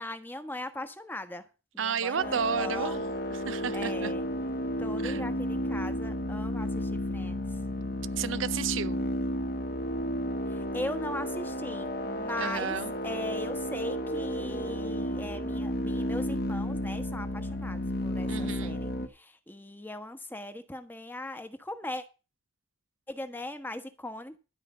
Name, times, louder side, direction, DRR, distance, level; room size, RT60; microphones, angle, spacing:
voice 1, 0.0-1.5 1.7-3.1 3.7-4.2 4.8-7.6 10.5-12.8 13.0-22.0 23.1-24.4, left 1 dB, 10° left, 1.2 m, -39 dB
voice 2, 1.8-3.0 3.3-4.1 5.0-5.2 8.1-9.1 12.4-12.9 18.3-18.8, right 7 dB, 75° right, 0.6 m, -32 dB
sound 1, 2.2-19.1, equal, 50° left, 1.5 m, -32 dB
12.5 x 5.1 x 9.0 m
head